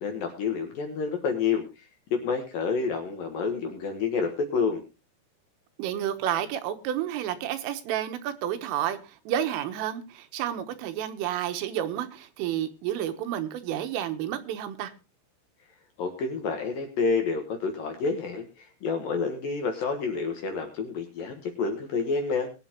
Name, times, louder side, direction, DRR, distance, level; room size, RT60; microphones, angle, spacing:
voice 1, 0.0-4.8 16.0-22.5, left 5 dB, 60° left, 2.5 m, -29 dB
voice 2, 5.8-14.9, right 11 dB, 80° right, 3.7 m, -30 dB
21.5 x 8.9 x 3.0 m
omnidirectional pair, 5.7 m